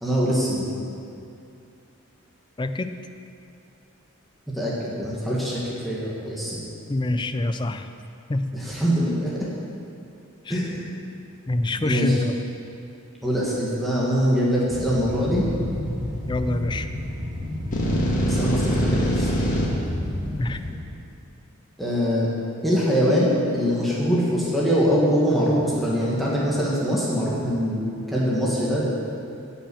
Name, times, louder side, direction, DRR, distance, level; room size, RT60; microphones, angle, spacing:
voice 1, 0.0-0.7 4.6-6.6 8.5-9.3 10.5-10.8 11.8-12.2 13.2-15.5 18.2-19.3 19.6-19.7 21.8-22.3 22.6-28.9, equal, ahead, -7 dB, 1.7 m, -23 dB
voice 2, 2.6-2.9 6.9-7.9 8.3-8.5 10.5-10.6 11.5-12.4 16.3-16.9 20.4-20.6, left 2 dB, 20° left, 9 dB, 0.4 m, -25 dB
sound 1, 14.7-20.7, left 1 dB, 20° right, 2.2 m, -31 dB
sound 2, 17.7-19.7, equal, 35° left, 1.8 m, -23 dB
16.0 x 5.7 x 7.0 m, 2.6 s
head